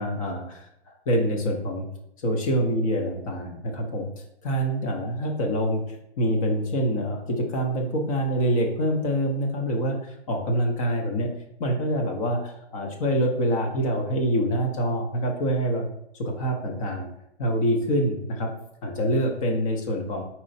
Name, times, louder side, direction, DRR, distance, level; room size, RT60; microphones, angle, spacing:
voice 1, 0.0-1.9 2.2-11.3 11.6-15.9 16.1-17.1 17.4-18.5 18.8-20.2, equal, 30° left, 1 dB, 0.7 m, -26 dB
4.6 x 4.3 x 2.7 m, 0.78 s
hypercardioid pair, 150°, 33 cm